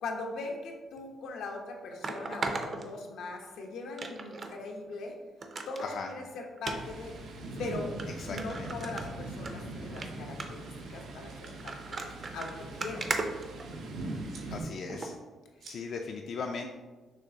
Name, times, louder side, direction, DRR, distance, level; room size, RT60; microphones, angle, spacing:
voice 1, 0.0-5.1 5.7-7.1 7.6-7.9 8.3-12.1 12.3-13.1 15.6-15.7, left 3 dB, 85° left, 1 dB, 0.7 m, -40 dB
sound 1, 1.0-1.1 2.0-3.5 4.0-4.5 4.9-5.0 5.4-5.9 6.6-6.8 7.5-7.6 8.0-8.1 8.4-9.5 9.9-10.1 10.4-10.7 11.4-14.1 14.9-15.1 15.6-15.7, right 3 dB, 35° right, 0.5 m, -36 dB
Thunder, 6.7-14.6, right 2 dB, 90° right, 0.7 m, -41 dB
voice 2, 8.2-8.7 14.5-15.2 15.7-16.7, left 5 dB, 55° left, 2 dB, 0.3 m, -38 dB
sound 2, 11.3-11.5 12.5-13.2 13.4-13.7 14.2-14.5 14.9-15.1 15.6-15.8, right 4 dB, 65° right, 1.1 m, -52 dB
6.0 x 3.2 x 2.7 m, 1.3 s
cardioid pair, 135°, 0 cm